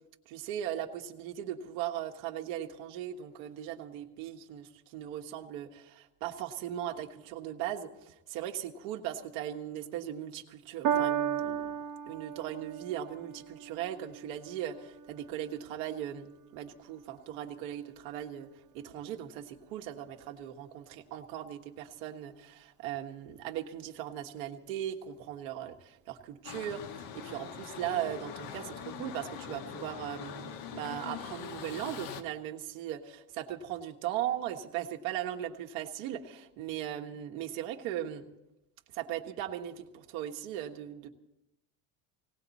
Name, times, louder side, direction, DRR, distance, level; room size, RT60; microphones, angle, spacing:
voice 1, 0.3-11.7 12.1-18.5 18.7-38.3 38.9-41.1, right 11 dB, 85° right, 3 dB, 1.6 m, -38 dB
Piano, 10.8-17.4 18.2-18.3, right 9 dB, 55° right, 1.6 m, -36 dB
sound 1, 26.4-32.2, left 7 dB, 60° left, 1.5 m, -42 dB
18.5 x 18.0 x 4.2 m, 0.90 s
cardioid pair, 160°, 39 cm